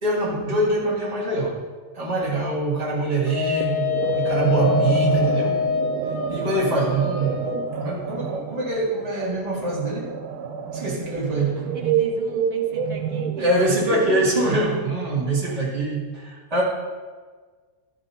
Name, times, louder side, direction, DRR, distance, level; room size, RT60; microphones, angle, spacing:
voice 1, 0.0-1.6 1.9-5.6 6.3-7.4 7.8-10.1 10.7-11.7 13.4-16.6, right 2 dB, 25° right, -5 dB, 1.9 m, -24 dB
Wind instrument woodwind instrument, 3.2-7.7, left 6 dB, 90° left, 2.3 m, -25 dB
sound 1, 3.6-14.9, right 7 dB, 85° right, 1.1 m, -28 dB
voice 2, 11.7-14.7, right 4 dB, 50° right, 2 dB, 1.2 m, -37 dB
13.5 x 5.1 x 4.2 m, 1.5 s
omnidirectional pair, 1.6 m